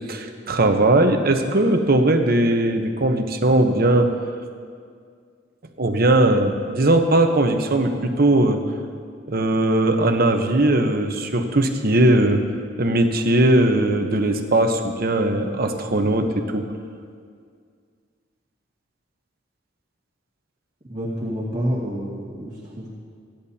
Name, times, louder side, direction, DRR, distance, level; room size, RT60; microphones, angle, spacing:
voice 1, 0.1-4.1 5.8-8.6 9.3-12.4 12.8-16.6, right 1 dB, 50° right, 5 dB, 1.0 m, -19 dB
voice 2, 20.9-22.9, equal, 25° right, -8 dB, 2.3 m, -28 dB
29.5 x 10.5 x 2.9 m, 2.1 s
head